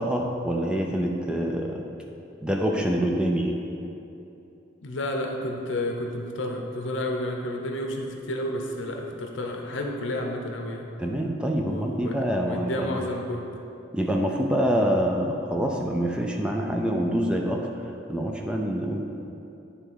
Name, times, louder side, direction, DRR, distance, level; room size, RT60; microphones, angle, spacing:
voice 1, 0.0-1.9 2.4-3.6 11.0-13.0 13.9-19.0, equal, 5° right, 1 dB, 0.4 m, -26 dB
voice 2, 4.8-10.9 11.6-13.4, left 1 dB, 70° left, 2 dB, 0.8 m, -31 dB
9.9 x 3.4 x 4.6 m, 2.8 s
head